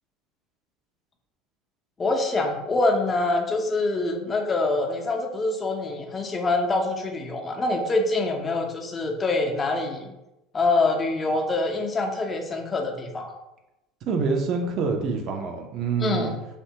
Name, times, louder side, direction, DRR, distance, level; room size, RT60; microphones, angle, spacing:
voice 1, 2.0-10.1 10.5-13.4 16.0-16.4, left 2 dB, 25° left, 3 dB, 0.5 m, -25 dB
voice 2, 14.0-16.3, right 5 dB, 45° right, 4 dB, 0.4 m, -26 dB
2.7 x 2.2 x 2.7 m, 0.94 s
figure-of-eight pair, 70°, 0 cm